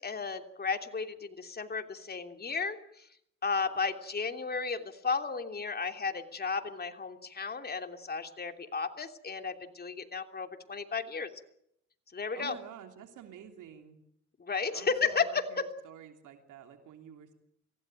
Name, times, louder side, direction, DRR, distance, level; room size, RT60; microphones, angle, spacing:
voice 1, 0.0-3.1 3.4-11.3 12.1-12.5 14.4-15.7, left 5 dB, 30° left, 7 dB, 3.1 m, -34 dB
voice 2, 12.4-14.0 14.7-17.3, right 9 dB, 80° right, 6 dB, 3.2 m, -50 dB
26.0 x 17.0 x 9.2 m, 0.73 s
cardioid pair, 90°, 30 cm